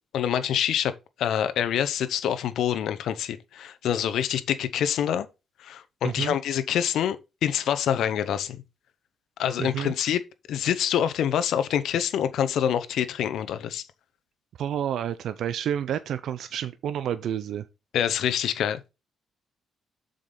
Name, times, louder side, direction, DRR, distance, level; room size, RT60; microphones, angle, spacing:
voice 1, 0.1-0.9 1.2-5.3 5.6-7.2 7.4-8.6 9.4-10.2 10.5-13.8 17.9-18.8, left 9 dB, 75° left, 0.8 m, -26 dB
voice 2, 6.0-6.3 9.6-9.9 14.6-17.7, right 9 dB, 70° right, 0.5 m, -29 dB
7.1 x 5.2 x 3.9 m
cardioid pair, 90°, 0 cm